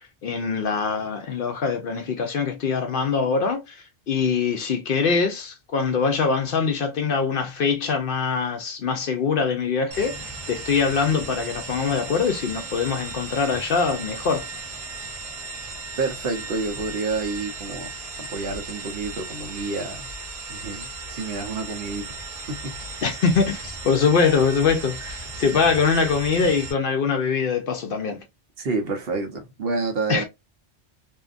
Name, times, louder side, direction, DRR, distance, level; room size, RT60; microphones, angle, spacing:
voice 1, 0.2-14.5 23.0-28.2 30.1-30.2, left 5 dB, 60° left, 0.7 m, -23 dB
sound 1, 9.9-26.7, right 3 dB, 40° right, 0.7 m, -36 dB
voice 2, 16.0-17.9 18.3-20.1 20.5-22.1 22.5-22.7 28.6-30.2, right 3 dB, 65° right, 1.0 m, -29 dB
2.7 x 2.4 x 2.4 m
omnidirectional pair, 1.1 m